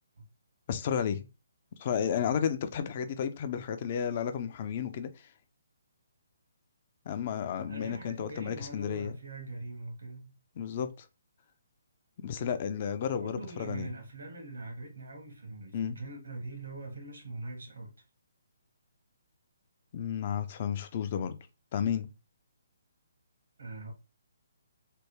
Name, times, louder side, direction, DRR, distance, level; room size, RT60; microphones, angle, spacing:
voice 1, 0.7-1.3 1.8-5.3 7.1-9.1 10.6-11.1 12.2-13.9 15.7-16.0 19.9-21.4 21.7-22.1, left 8 dB, 40° left, 0.4 m, -32 dB
voice 2, 7.7-10.3 13.1-18.0 23.6-23.9, right 2 dB, 75° right, 1.3 m, -42 dB
3.3 x 2.2 x 3.1 m
hypercardioid pair, 145°, 0 cm